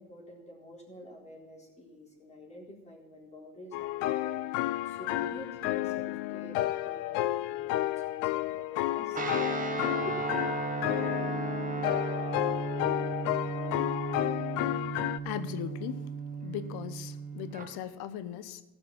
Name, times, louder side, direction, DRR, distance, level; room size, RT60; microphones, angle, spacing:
voice 1, 0.0-9.2 10.0-10.2, left 1 dB, 15° left, -1 dB, 4.0 m, -48 dB
sound 1, 3.7-15.2, left 15 dB, 80° left, 0.7 m, -31 dB
Guitar, 9.1-17.7, right 4 dB, 20° right, 1.8 m, -35 dB
voice 2, 15.2-16.1 16.4-18.6, left 10 dB, 65° left, 13 dB, 1.1 m, -38 dB
15.0 x 6.2 x 7.3 m, 1.0 s
supercardioid pair, 105°, 42 cm